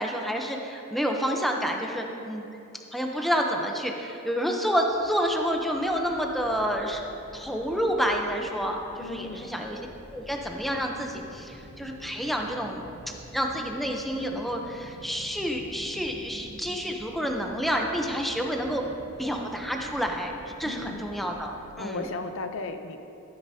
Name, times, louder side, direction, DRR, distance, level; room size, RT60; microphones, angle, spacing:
voice 1, 0.0-2.4 2.9-7.0 7.3-9.8 10.1-12.8 13.3-18.9 19.2-20.3 20.6-22.0, equal, ahead, 2 dB, 0.6 m, -29 dB
sound 1, 4.9-22.3, right 1 dB, 55° right, 1.4 m, -48 dB
voice 2, 9.0-9.5 20.6-21.1 21.8-23.0, left 3 dB, 65° left, 7 dB, 0.6 m, -35 dB
13.5 x 9.5 x 2.7 m, 2.8 s
head